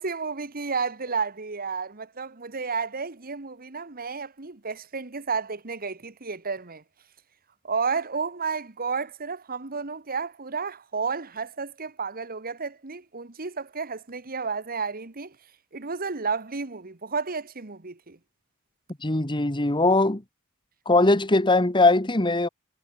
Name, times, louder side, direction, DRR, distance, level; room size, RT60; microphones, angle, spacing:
voice 1, 0.0-6.8 7.6-15.3 15.7-18.2, right 5 dB, 40° right, 1.4 m, -32 dB
voice 2, 19.0-20.2 20.8-22.5, left 2 dB, 20° left, 1.6 m, -20 dB
head